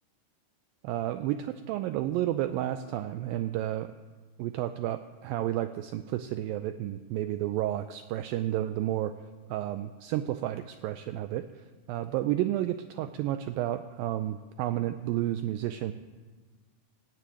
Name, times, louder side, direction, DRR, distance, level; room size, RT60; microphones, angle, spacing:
voice 1, 0.8-3.9 4.4-9.2 9.5-11.4 11.9-15.9, right 13 dB, 85° right, 10 dB, 2.0 m, -31 dB
15.5 x 10.0 x 9.1 m, 1.4 s
omnidirectional pair, 4.7 m